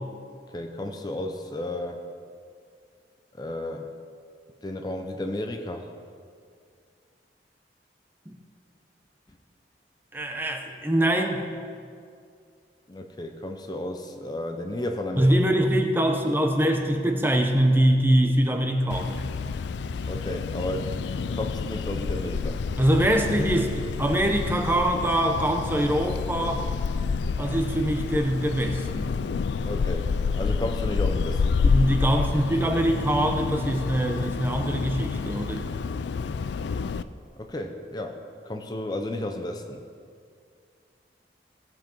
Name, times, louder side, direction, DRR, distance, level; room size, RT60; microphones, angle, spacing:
voice 1, 0.5-2.0 3.3-3.9 4.6-5.9 12.9-15.4 20.1-22.6 29.6-31.6 37.4-39.8, left 1 dB, 25° left, 4 dB, 0.6 m, -33 dB
voice 2, 10.1-11.5 15.2-19.2 22.8-26.7 27.4-29.1 31.6-35.7, right 1 dB, 10° right, 4 dB, 0.8 m, -23 dB
sound 1, 18.9-37.0, left 5 dB, 80° left, 0.4 m, -29 dB
17.5 x 7.6 x 4.5 m, 2.2 s
head